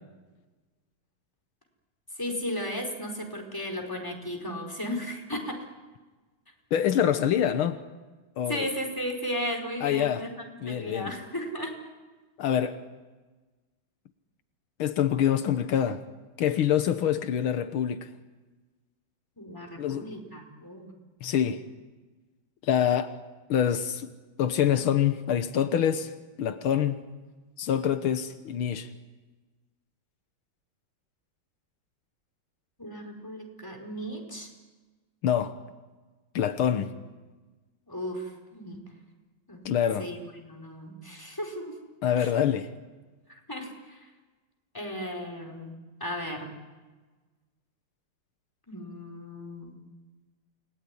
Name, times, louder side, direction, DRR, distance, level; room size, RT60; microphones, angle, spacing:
voice 1, 2.2-5.6 8.5-10.3 10.6-11.7 19.4-20.9 32.8-34.5 37.9-38.8 39.5-39.6 40.0-41.7 42.2-42.3 43.3-44.1 44.7-46.5 48.7-49.7, equal, 10° left, 4.7 m, -35 dB
voice 2, 6.7-7.8 8.4-8.7 9.8-10.3 10.6-11.1 12.4-12.8 14.8-16.0 16.4-18.1 19.8-20.1 21.2-21.6 22.6-23.1 23.5-24.1 24.4-26.1 26.4-27.0 27.6-28.9 35.2-35.6 36.4-36.9 39.7-40.1 42.0-42.7, left 9 dB, 80° left, 1.9 m, -25 dB
29.0 x 20.5 x 9.8 m
omnidirectional pair, 2.3 m